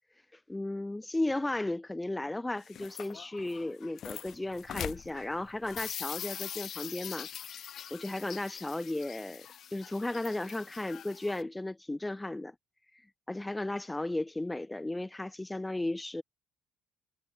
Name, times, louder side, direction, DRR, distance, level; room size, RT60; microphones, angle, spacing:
voice 1, 0.3-12.5 13.3-16.2, left 2 dB, 10° left, 0.7 m, -35 dB
sound 1, 2.5-11.4, left 9 dB, 50° left, 0.4 m, -43 dB
figure-of-eight pair, 50°, 0 cm